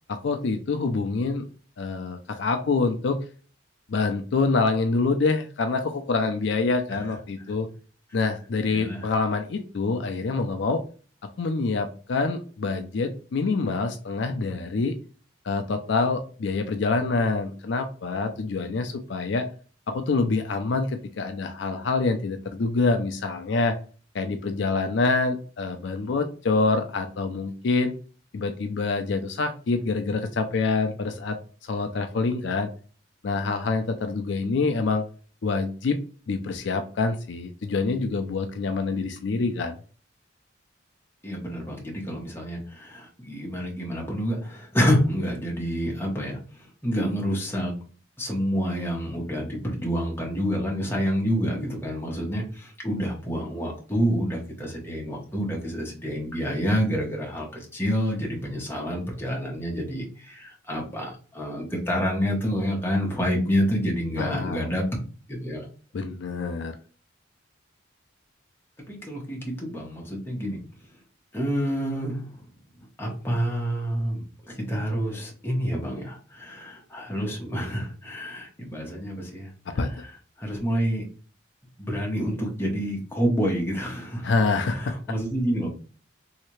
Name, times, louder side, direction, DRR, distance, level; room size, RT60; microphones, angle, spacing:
voice 1, 0.1-1.5 1.8-3.2 3.9-7.7 8.1-10.8 11.4-15.0 15.4-19.5 19.9-23.8 24.1-27.9 28.3-31.4 31.6-32.7 33.2-35.0 35.4-36.0 36.3-39.8 64.2-64.7 65.9-66.8 79.7-79.9 84.2-84.9, left 3 dB, 60° left, 6 dB, 0.4 m, -26 dB
voice 2, 8.7-9.1 41.2-46.4 46.8-47.7 48.2-64.8 65.3-65.7 68.9-70.6 71.3-72.3 73.0-79.5 80.4-81.0 81.8-84.3 84.7-85.7, equal, 10° left, -2 dB, 1.0 m, -28 dB
3.2 x 2.8 x 3.1 m, 0.39 s
head